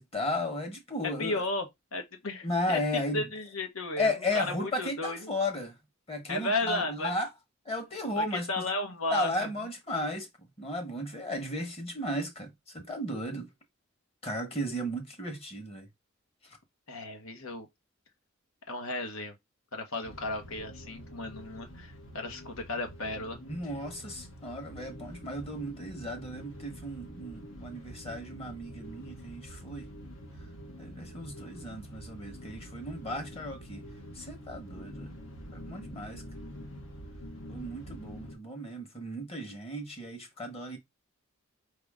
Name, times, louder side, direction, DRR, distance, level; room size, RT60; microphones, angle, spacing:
voice 1, 0.0-1.3 2.4-3.2 4.0-5.7 6.1-7.3 7.6-8.6 9.1-10.3 10.6-13.5 14.2-15.9 23.4-29.9 30.8-33.8 34.1-35.2 35.5-36.2 37.5-40.8, left 1 dB, 30° left, 1.3 m, -34 dB
voice 2, 1.2-1.6 1.9-2.8 3.1-5.3 6.3-7.1 8.2-9.5 16.9-17.7 18.7-19.3 19.7-23.4, left 2 dB, 85° left, 1.3 m, -34 dB
sound 1, 20.0-38.4, equal, 65° left, 1.0 m, -46 dB
4.9 x 2.9 x 3.6 m
head